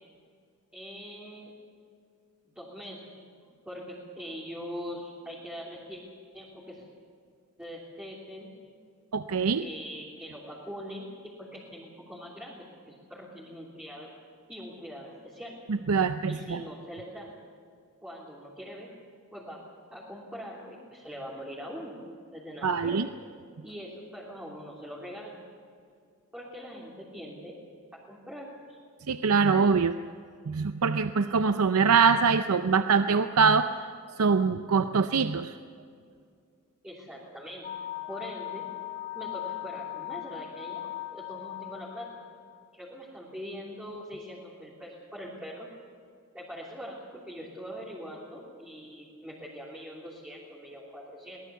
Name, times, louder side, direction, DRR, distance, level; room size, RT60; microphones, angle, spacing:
voice 1, 0.7-1.5 2.5-3.1 3.4-6.0 6.3-6.8 7.6-8.6 9.6-11.1 11.4-14.1 14.5-15.6 16.3-17.3 18.0-18.9 19.3-19.6 19.9-22.0 22.3-23.1 23.6-25.4 26.3-27.6 28.1-28.8 36.8-37.7 37.9-38.7 39.1-42.1 42.7-45.7 46.3-51.4, equal, 5° right, -6 dB, 3.2 m, -42 dB
voice 2, 9.1-9.6 15.7-16.6 22.6-23.1 29.1-30.0 30.5-33.7 34.2-35.5, right 5 dB, 80° right, 10 dB, 0.6 m, -23 dB
sound 1, 37.6-42.6, left 15 dB, 45° left, 2.1 m, -39 dB
23.0 x 18.5 x 7.0 m, 2.3 s
head